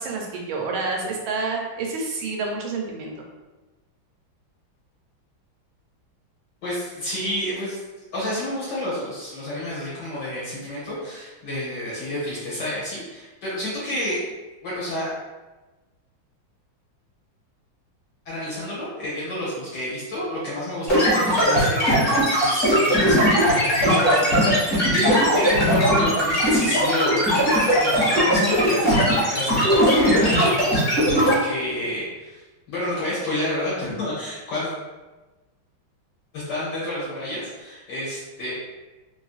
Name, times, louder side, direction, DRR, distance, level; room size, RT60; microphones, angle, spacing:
voice 1, 0.0-3.1, right 3 dB, 80° right, 0 dB, 1.4 m, -28 dB
voice 2, 6.6-7.8 8.1-14.2 14.6-15.2 18.3-32.4 32.7-34.7 36.3-38.5, left 1 dB, 65° left, -8 dB, 1.3 m, -29 dB
sound 1, 20.9-31.3, equal, 35° left, 1.3 m, -19 dB
3.3 x 2.6 x 2.4 m, 1.2 s
omnidirectional pair, 2.2 m